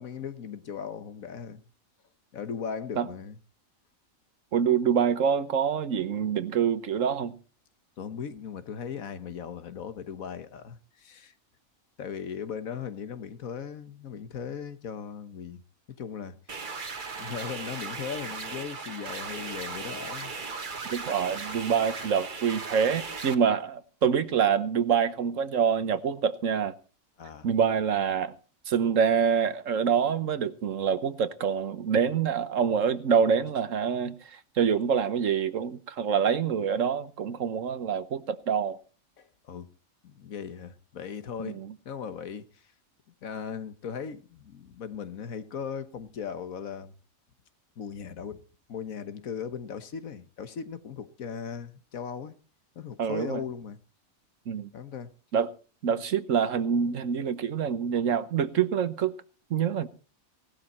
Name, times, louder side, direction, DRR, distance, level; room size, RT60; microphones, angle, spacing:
voice 1, 0.0-1.6 2.3-3.4 8.0-11.3 12.0-15.6 15.9-16.4 17.1-20.3 21.3-21.4 27.2-27.5 39.2-39.7 40.0-42.7 43.2-46.9 47.8-48.4 48.7-52.4 52.7-53.8 54.7-55.1, left 7 dB, 75° left, 1.6 m, -38 dB
voice 2, 4.5-7.3 20.9-26.7 27.4-28.3 28.7-38.8 41.4-41.7 53.0-53.4 54.5-54.7 55.3-55.5 55.8-59.1 59.5-59.9, right 7 dB, 70° right, 1.4 m, -26 dB
Industry Factory, 16.5-23.3, right 4 dB, 40° right, 1.3 m, -37 dB
17.5 x 12.5 x 4.3 m
omnidirectional pair, 1.4 m